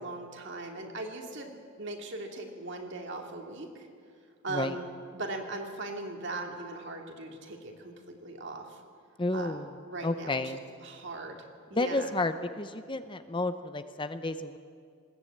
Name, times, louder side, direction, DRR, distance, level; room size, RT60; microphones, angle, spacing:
voice 1, 0.0-1.5 1.8-3.9 4.4-8.8 9.3-9.6 9.9-11.4 11.7-12.1, right 2 dB, 55° right, 3 dB, 2.4 m, -39 dB
voice 2, 9.2-9.7 10.0-10.6 11.7-14.6, left 2 dB, 20° left, 10 dB, 0.6 m, -31 dB
20.5 x 17.0 x 8.8 m, 2.2 s
head